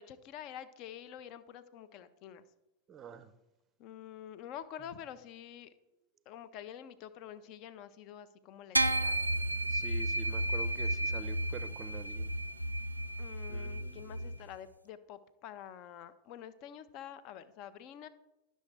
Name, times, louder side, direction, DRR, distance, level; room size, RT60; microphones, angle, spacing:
voice 1, 0.0-2.4 3.8-5.7 6.3-9.2 13.2-18.1, left 10 dB, 40° left, 14 dB, 0.5 m, -48 dB
voice 2, 2.9-3.3 9.7-12.3 13.5-14.3, right 5 dB, 25° right, 12 dB, 0.5 m, -47 dB
sound 1, 8.8-14.4, right 1 dB, 85° right, 0.3 m, -33 dB
11.0 x 6.4 x 3.3 m, 0.94 s
figure-of-eight pair, 90°, 0 cm